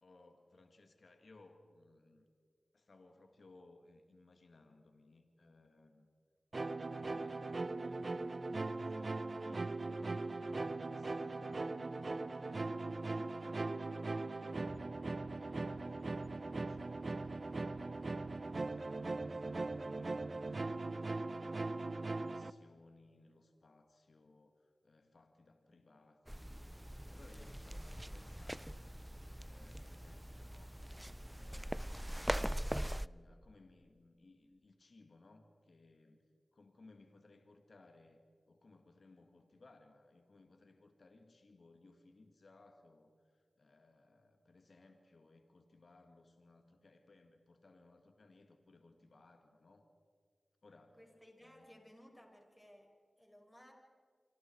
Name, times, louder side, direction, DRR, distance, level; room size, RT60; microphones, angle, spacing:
voice 1, 0.0-2.3 2.7-6.1 6.9-7.5 7.8-8.4 8.7-12.0 12.4-14.9 15.4-26.7 27.1-28.9 29.4-30.8 31.2-36.2 36.5-38.2 38.5-49.9 50.6-51.0 51.4-51.7, left 2 dB, 70° left, 5 dB, 2.1 m, -63 dB
sound 1, 6.5-22.5, right 3 dB, 55° right, 0.7 m, -40 dB
sound 2, 26.3-33.1, equal, 10° right, 0.5 m, -42 dB
voice 2, 50.9-53.7, equal, 10° left, 1 dB, 6.2 m, -60 dB
28.0 x 25.0 x 4.7 m, 2.1 s
cardioid pair, 45°, 0 cm